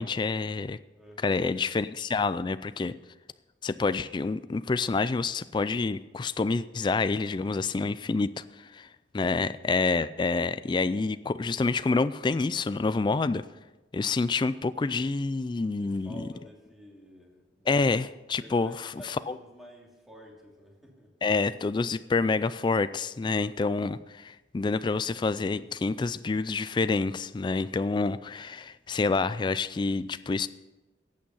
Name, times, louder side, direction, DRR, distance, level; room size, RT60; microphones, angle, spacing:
voice 1, 0.0-0.8 1.2-2.9 3.6-8.9 9.1-13.5 13.9-16.2 17.7-18.9 21.2-30.5, left 4 dB, 25° left, 14 dB, 0.3 m, -28 dB
voice 2, 0.9-1.5 15.6-17.8 18.2-21.1, equal, ahead, -2 dB, 2.6 m, -51 dB
15.0 x 8.8 x 5.5 m, 1.1 s
head